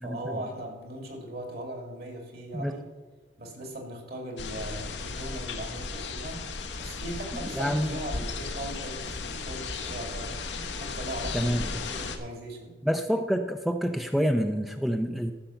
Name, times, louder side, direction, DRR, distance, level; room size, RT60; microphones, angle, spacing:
voice 1, 0.0-2.9 3.4-6.5 6.8-10.5 10.8-12.7, right 1 dB, 60° right, 3 dB, 2.5 m, -39 dB
sound 1, 4.4-12.2, left 4 dB, 90° left, 1.1 m, -35 dB
voice 2, 7.5-7.9 11.3-11.6 12.8-15.3, equal, ahead, 6 dB, 0.5 m, -27 dB
13.0 x 6.6 x 5.7 m, 1.4 s
head